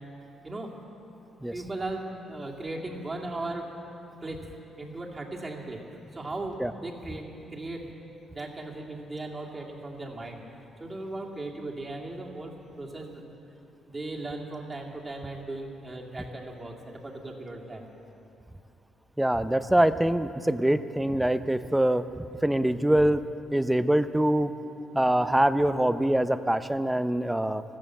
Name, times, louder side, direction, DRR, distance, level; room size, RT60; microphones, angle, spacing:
voice 1, 1.5-3.7 4.2-4.4 4.8-5.8 6.1-7.9 8.3-10.4 10.8-13.2 13.9-17.9, right 2 dB, 25° right, 0 dB, 2.4 m, -37 dB
voice 2, 19.2-23.2 23.5-24.5 24.9-27.6, right 1 dB, 5° right, 12 dB, 0.6 m, -24 dB
14.0 x 13.5 x 7.6 m, 2.9 s
cardioid pair, 90°, 0 cm